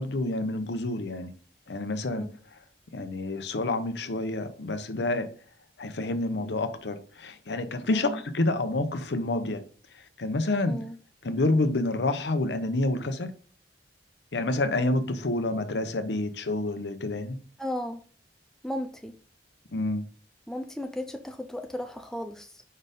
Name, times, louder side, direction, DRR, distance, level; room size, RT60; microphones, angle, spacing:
voice 1, 0.0-1.3 1.7-2.3 2.9-5.3 5.8-9.6 10.2-10.8 11.2-13.3 14.3-17.4 19.7-20.1, left 2 dB, 75° left, 0.7 m, -28 dB
voice 2, 7.9-8.2 10.7-11.0 17.6-18.0 18.6-19.1 20.5-22.6, left 1 dB, 5° left, 0.4 m, -35 dB
5.2 x 4.2 x 5.0 m
head